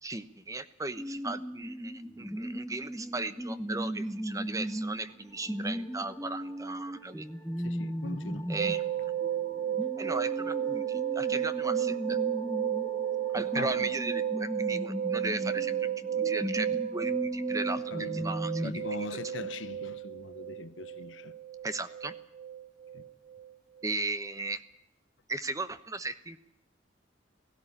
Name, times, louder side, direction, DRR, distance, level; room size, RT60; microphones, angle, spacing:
voice 1, 0.0-7.3 8.5-9.0 10.0-12.2 13.3-15.9 16.2-19.1 21.6-22.1 23.8-24.6 25.3-26.4, right 2 dB, 20° right, 1.0 m, -36 dB
sound 1, 1.0-18.8, equal, ahead, 1.0 m, -37 dB
sound 2, 4.2-15.6, right 1 dB, 20° left, 1.4 m, -52 dB
voice 2, 7.6-8.5 13.5-13.8 17.9-18.3 18.6-21.3 22.9-23.1, left 3 dB, 85° left, 1.0 m, -41 dB
sound 3, 8.6-23.5 23.8-23.9, right 10 dB, 45° right, 0.9 m, -33 dB
17.5 x 16.0 x 9.9 m
head